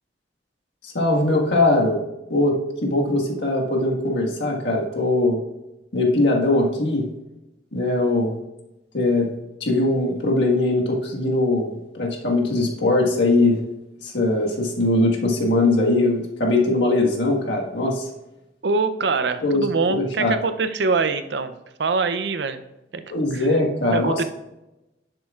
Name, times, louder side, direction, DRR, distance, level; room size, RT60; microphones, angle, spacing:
voice 1, 0.9-2.0 2.3-5.4 5.9-7.1 7.7-8.3 8.9-9.3 9.6-13.6 14.0-18.1 19.4-20.3 23.1-24.2, left 2 dB, 70° left, -1 dB, 1.6 m, -21 dB
voice 2, 18.6-21.5 21.8-22.6 22.9-23.0 23.3-23.5 23.9-24.2, right 4 dB, 70° right, 10 dB, 0.6 m, -23 dB
10.5 x 7.5 x 2.4 m, 0.95 s
head